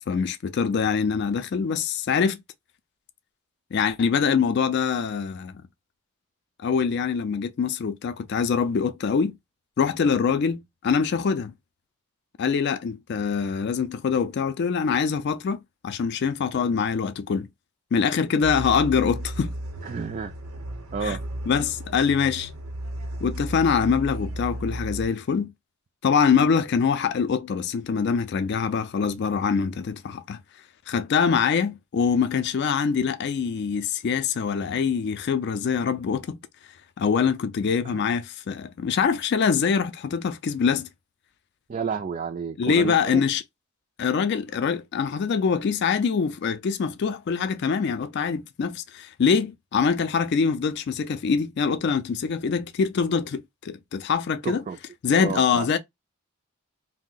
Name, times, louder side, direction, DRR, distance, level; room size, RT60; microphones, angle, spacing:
voice 1, 0.1-2.4 3.7-5.5 6.6-9.3 9.8-11.5 12.4-15.6 15.8-17.5 17.9-19.5 21.0-21.2 21.5-22.5 23.2-25.5 26.0-30.4 30.9-36.4 37.0-40.9 42.6-43.4 44.0-54.6 55.0-55.8, left 6 dB, 50° left, 0.3 m, -24 dB
sound 1, 18.4-25.1, right 1 dB, 85° right, 0.8 m, -34 dB
voice 2, 19.8-20.3 20.9-21.2 37.8-38.0 41.7-43.2 54.4-54.8 55.1-55.7, right 5 dB, 35° right, 0.3 m, -31 dB
2.6 x 2.1 x 3.7 m
head